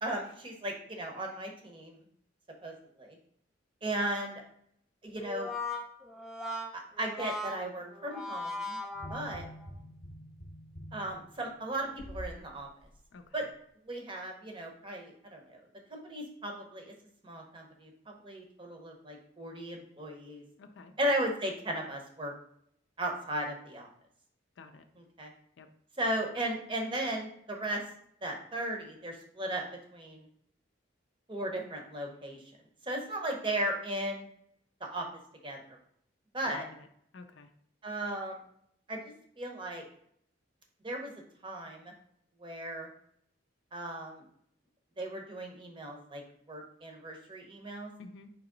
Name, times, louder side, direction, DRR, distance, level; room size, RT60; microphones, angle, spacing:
voice 1, 0.0-2.0 2.6-3.2 3.8-4.4 5.0-5.5 6.7-8.8 9.1-9.5 10.9-12.7 13.3-13.5 13.9-15.6 15.9-16.9 17.2-20.4 21.0-22.3 23.0-23.9 25.0-25.3 26.0-27.8 28.2-29.6 29.9-30.3 31.3-32.4 32.8-34.3 34.8-35.1 35.4-35.8 36.3-36.6 37.8-38.4 38.9-39.0 39.4-39.8 40.8-41.1 41.4-41.9 42.4-42.9 43.7-44.2 45.0-46.2 46.5-47.9, right 1 dB, 25° right, 1 dB, 0.7 m, -36 dB
Brass instrument, 5.2-9.7, left 2 dB, ahead, 0.4 m, -38 dB
sound 1, 8.9-12.4 12.8-13.0, equal, 35° left, 0.7 m, -46 dB
voice 2, 13.1-13.5 20.6-20.9 24.6-24.8 25.6-25.7 36.4-36.9 37.1-37.5 48.0-48.3, left 4 dB, 70° left, 7 dB, 0.4 m, -50 dB
4.7 x 2.9 x 3.7 m, 0.68 s
head